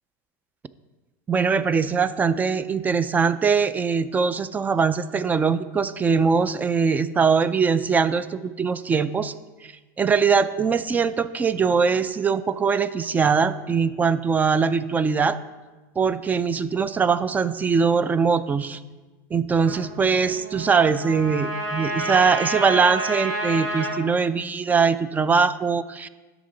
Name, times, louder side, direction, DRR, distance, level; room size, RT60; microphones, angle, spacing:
voice 1, 1.3-9.3 9.6-9.7 10.0-15.4 16.0-18.8 19.3-26.1, right 5 dB, 15° right, 15 dB, 0.3 m, -22 dB
Trumpet, 19.6-24.0, right 1 dB, 80° right, 2.0 m, -29 dB
11.0 x 6.8 x 3.8 m, 1.2 s
supercardioid pair, 130°, 10 cm